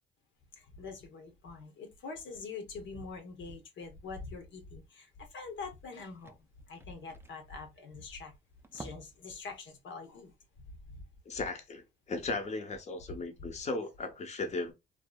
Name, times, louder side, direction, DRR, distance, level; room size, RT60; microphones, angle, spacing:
voice 1, 0.5-8.3 8.7-10.3 10.7-11.0 13.4-13.5, left 4 dB, 70° left, 0.9 m, -45 dB
sound 1, 5.2-5.3 5.5-5.6 5.8-8.2 8.5-9.3 9.6-9.8 10.2-10.3, right 2 dB, 10° right, 0.4 m, -51 dB
voice 2, 11.3-14.7, left 3 dB, 35° left, 0.7 m, -36 dB
2.6 x 2.6 x 2.2 m
cardioid pair, 90°, 20 cm